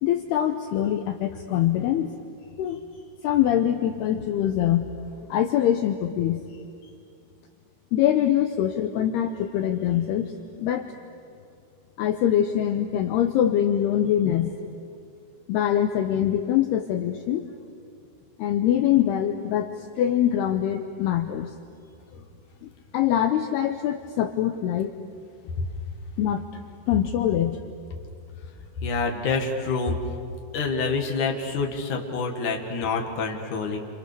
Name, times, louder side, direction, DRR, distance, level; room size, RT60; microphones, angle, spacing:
voice 1, 0.0-2.1 2.6-2.8 3.2-6.4 7.9-10.3 10.6-10.9 12.0-14.6 15.5-17.5 18.4-21.5 22.6-24.9 26.2-26.4 26.9-27.6, left 10 dB, 85° left, 6 dB, 2.3 m, -24 dB
voice 2, 28.8-30.0 30.5-33.8, left 4 dB, 50° left, 1 dB, 2.7 m, -27 dB
29.5 x 28.5 x 6.9 m, 2.4 s
omnidirectional pair, 5.7 m